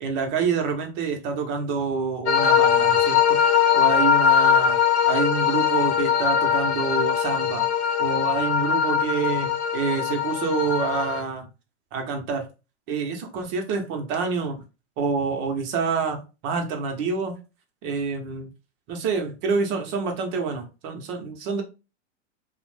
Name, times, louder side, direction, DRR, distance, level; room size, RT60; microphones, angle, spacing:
voice 1, 0.0-4.8 5.1-7.7 8.0-11.5 11.9-12.5 12.9-14.6 15.0-17.3 17.8-18.5 18.9-21.6, right 5 dB, 35° right, 0.6 m, -27 dB
sound 1, 2.3-11.2, left 8 dB, 65° left, 0.6 m, -21 dB
2.4 x 2.0 x 3.2 m
hypercardioid pair, 125°, 36 cm